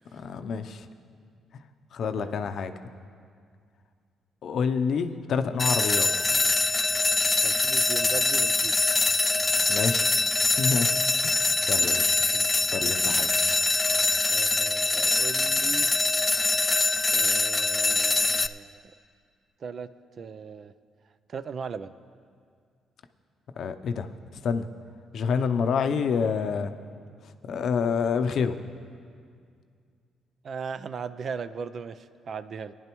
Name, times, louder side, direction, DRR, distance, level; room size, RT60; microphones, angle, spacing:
voice 1, 0.1-0.9 1.9-2.7 4.4-6.3 9.7-10.1 10.6-10.9 11.2-12.0 12.7-13.3 23.6-24.1 24.4-24.7 25.1-26.7 27.4-28.6, left 6 dB, 65° left, 8 dB, 0.6 m, -27 dB
sound 1, 5.6-18.5, left 3 dB, 20° left, 0.3 m, -23 dB
voice 2, 7.4-8.9 12.3-12.5 14.3-15.9 17.1-18.9 19.6-20.7 21.3-21.9 30.4-32.7, right 6 dB, 50° right, 13 dB, 0.4 m, -38 dB
19.0 x 10.5 x 3.0 m, 2.2 s
cardioid pair, 90°, 0 cm